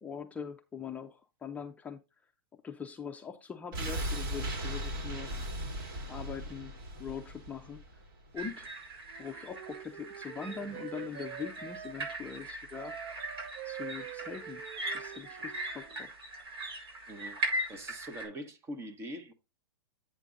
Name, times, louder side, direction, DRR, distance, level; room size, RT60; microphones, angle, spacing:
voice 1, 0.0-2.3 2.6-5.4 6.1-8.0 8.3-8.7 9.2-12.9 13.6-14.6 14.9-16.1, left 6 dB, 10° left, 0.6 m, -42 dB
sound 1, 3.7-8.7 9.0-9.1, right 1 dB, 70° right, 4.1 m, -38 dB
sound 2, 8.4-18.3, right 1 dB, 85° right, 5.2 m, -40 dB
Wind instrument woodwind instrument, 9.1-12.2 12.7-16.0, right 10 dB, 50° right, 0.7 m, -46 dB
voice 2, 17.1-17.4 17.7-19.3, equal, 20° right, 1.2 m, -43 dB
8.3 x 6.0 x 3.8 m
hypercardioid pair, 135°, 12 cm